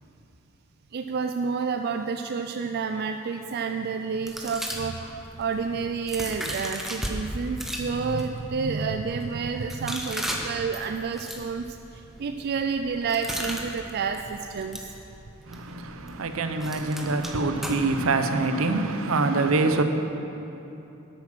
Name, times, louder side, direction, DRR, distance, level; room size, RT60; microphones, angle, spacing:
voice 1, 0.9-11.8 12.2-14.8, right 5 dB, 50° right, 0.4 m, -29 dB
sound 1, 4.3-7.2 7.5-18.1, equal, ahead, 0.9 m, -37 dB
voice 2, 15.5-19.8, right 3 dB, 75° right, 0.7 m, -25 dB
9.9 x 8.7 x 6.1 m
head